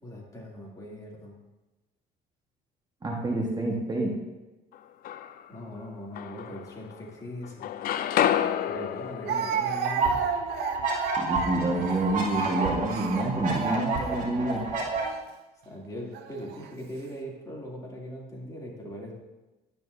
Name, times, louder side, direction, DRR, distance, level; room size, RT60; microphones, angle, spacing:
voice 1, 0.0-1.4 5.5-7.7 8.7-10.2 15.6-19.1, equal, 20° left, -3 dB, 2.6 m, -40 dB
voice 2, 3.0-4.1 11.2-14.6, right 2 dB, 25° right, -2 dB, 1.4 m, -28 dB
sound 1, 4.7-5.6 6.2-7.2 7.4-11.4, left 10 dB, 60° left, 0.5 m, -31 dB
Speech, 8.1-8.2 9.3-14.2 14.9-15.2 16.1-16.7, right 8 dB, 70° right, 0.7 m, -33 dB
sound 2, 9.8-15.0, right 3 dB, 50° right, 2.7 m, -30 dB
11.0 x 9.0 x 2.6 m, 1.1 s
cardioid pair, 110°, 17 cm